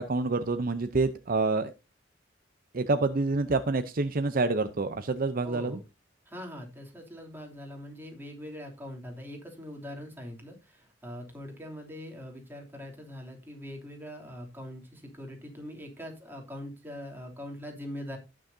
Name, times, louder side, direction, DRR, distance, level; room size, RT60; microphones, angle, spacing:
voice 1, 0.0-1.7 2.7-5.8, right 3 dB, 50° right, 10 dB, 0.7 m, -27 dB
voice 2, 5.4-5.8 6.3-18.2, equal, 10° right, 0 dB, 2.9 m, -42 dB
18.0 x 6.3 x 2.7 m, 0.26 s
head